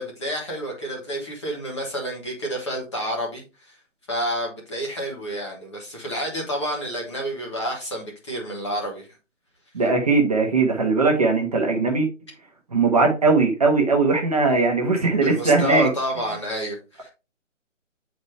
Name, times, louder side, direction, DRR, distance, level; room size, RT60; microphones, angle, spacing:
voice 1, 0.0-3.4 4.1-9.1 15.2-17.1, equal, 20° left, 1.2 m, -29 dB
voice 2, 9.7-12.1 12.7-15.9, right 3 dB, 30° right, 1.0 m, -19 dB
7.9 x 4.2 x 3.2 m
hypercardioid pair, 170°, 39 cm